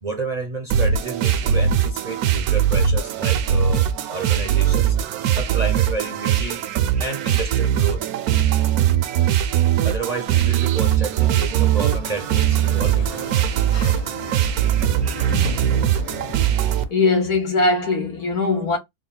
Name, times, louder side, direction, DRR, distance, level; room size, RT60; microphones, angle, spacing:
voice 1, 0.0-5.0 5.3-6.6 7.0-8.1 9.8-13.1, right 4 dB, 45° right, 0.5 m, -30 dB
sound 1, 0.7-16.8, right 9 dB, 75° right, 1.1 m, -20 dB
Sliding door, 11.7-17.0, left 6 dB, 65° left, 0.3 m, -37 dB
voice 2, 15.3-15.7 16.9-18.8, left 3 dB, 85° left, 1.9 m, -21 dB
3.8 x 2.2 x 3.9 m
omnidirectional pair, 1.6 m